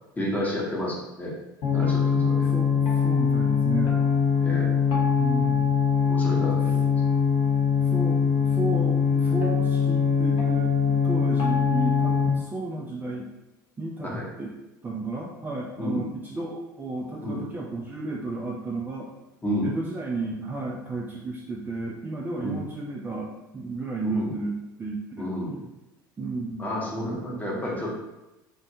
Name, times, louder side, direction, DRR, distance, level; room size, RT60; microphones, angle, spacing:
voice 1, 0.2-1.3 1.7-2.5 4.4-4.7 6.1-6.9 14.0-14.3 15.8-16.0 17.2-17.5 19.4-19.8 22.4-22.7 24.0-24.3 25.2-25.6 26.6-28.0, equal, 15° left, -4 dB, 0.8 m, -31 dB
sound 1, 1.6-12.3, left 6 dB, 50° left, 0.8 m, -22 dB
voice 2, 2.1-3.9 5.1-5.7 6.4-6.7 7.8-13.3 13.8-14.5 14.8-19.1 19.6-25.3 26.2-26.6 27.0-27.6, right 2 dB, 15° right, -3 dB, 0.3 m, -33 dB
2.5 x 2.1 x 2.7 m, 0.99 s
figure-of-eight pair, 70°, 11 cm